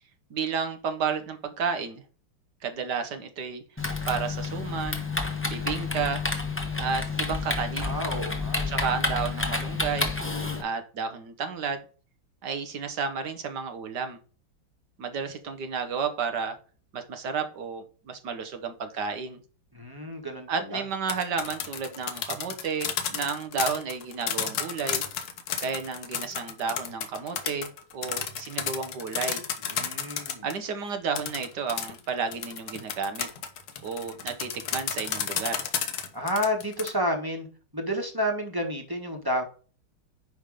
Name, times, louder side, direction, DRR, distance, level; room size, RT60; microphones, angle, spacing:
voice 1, 0.3-2.0 2.6-3.6 4.1-5.0 5.4-6.2 6.8-8.0 8.7-10.1 10.6-11.8 12.4-14.2 15.0-16.6 16.9-19.4 20.5-25.0 25.6-29.4 30.4-33.3 33.8-35.7, right 6 dB, 60° right, 8 dB, 1.4 m, -32 dB
Typing, 3.8-10.6, left 3 dB, 10° left, 0.9 m, -30 dB
voice 2, 7.8-8.7 19.7-20.8 29.7-30.5 36.1-37.5 37.7-39.4, equal, 10° right, 2 dB, 1.5 m, -30 dB
sound 1, 20.9-30.6 31.1-36.9, left 8 dB, 80° left, 1.9 m, -32 dB
10.0 x 3.5 x 5.0 m, 0.38 s
omnidirectional pair, 2.3 m